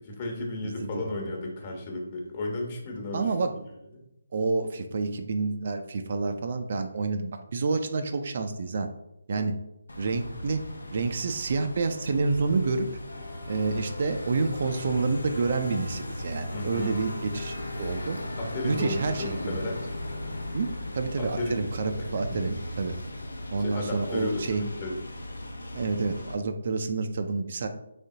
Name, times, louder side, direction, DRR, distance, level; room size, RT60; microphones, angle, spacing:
voice 1, 0.0-3.3 3.9-4.0 16.5-17.0 18.4-19.8 21.2-21.6 22.0-22.4 23.6-25.2, left 2 dB, 30° left, 0 dB, 1.2 m, -34 dB
voice 2, 0.6-1.1 3.1-3.5 4.3-8.9 9.3-9.5 10.0-10.6 10.9-12.9 13.5-18.2 18.6-19.6 20.5-20.7 20.9-23.0 23.5-24.6 25.7-27.7, right 4 dB, 45° right, 6 dB, 0.4 m, -28 dB
sound 1, 9.9-26.4, left 1 dB, 70° left, 0.7 m, -37 dB
5.1 x 3.5 x 2.7 m, 0.85 s
figure-of-eight pair, 150°, 0 cm